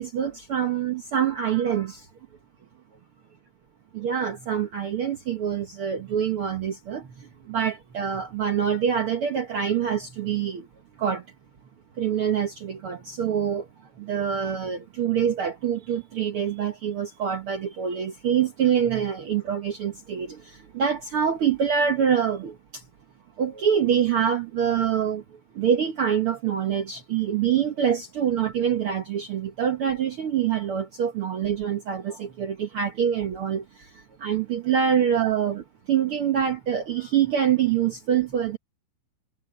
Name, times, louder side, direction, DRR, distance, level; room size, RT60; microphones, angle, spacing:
voice 1, 0.0-2.0 3.9-7.0 7.5-10.7 11.0-11.2 12.0-13.6 14.0-20.4 20.7-22.5 23.4-25.2 25.6-33.6 34.2-35.6 35.9-38.6, right 8 dB, 55° right, 1.7 m, -25 dB
omnidirectional pair, 3.7 m